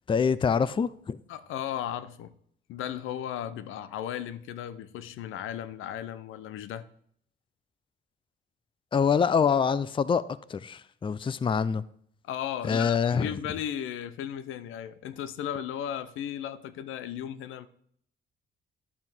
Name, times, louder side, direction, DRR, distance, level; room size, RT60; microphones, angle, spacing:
voice 1, 0.1-1.2 8.9-10.2 10.5-11.8 12.6-13.3, left 6 dB, 25° left, 0.5 m, -25 dB
voice 2, 1.3-2.3 2.7-6.9 12.2-17.7, left 10 dB, 85° left, 0.7 m, -35 dB
11.0 x 5.5 x 6.1 m
cardioid pair, 90°, 20 cm